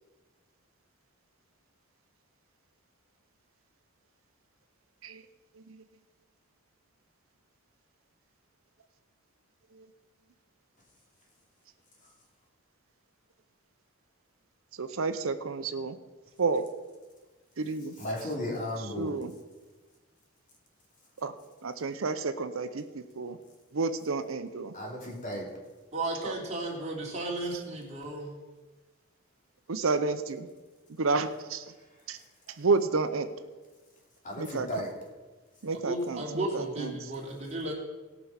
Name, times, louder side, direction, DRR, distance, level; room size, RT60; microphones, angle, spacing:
voice 1, 14.8-16.0 16.4-16.7 17.6-18.0 19.0-19.3 21.2-21.3 21.6-23.4 23.7-24.7 26.2-26.3 29.7-30.5 31.0-31.7 32.1-32.2 32.5-33.3 34.4-34.8 35.6-36.9, right 4 dB, 80° right, 9 dB, 0.7 m, -30 dB
voice 2, 18.0-19.1 24.7-25.5 34.2-34.9, left 1 dB, 40° left, -1 dB, 2.9 m, -35 dB
voice 3, 25.9-28.4 35.8-37.7, right 2 dB, 35° right, -3 dB, 3.1 m, -34 dB
18.0 x 6.1 x 5.7 m, 1.3 s
head